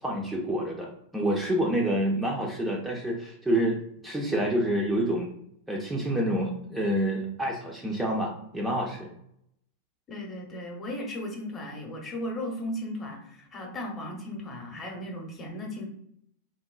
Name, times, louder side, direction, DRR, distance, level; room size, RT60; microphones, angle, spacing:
voice 1, 0.0-5.3 5.7-9.1, right 1 dB, 5° right, -2 dB, 0.4 m, -28 dB
voice 2, 10.1-15.9, left 1 dB, 25° left, 1 dB, 0.7 m, -36 dB
3.0 x 2.0 x 2.3 m, 0.73 s
figure-of-eight pair, 90°, 0 cm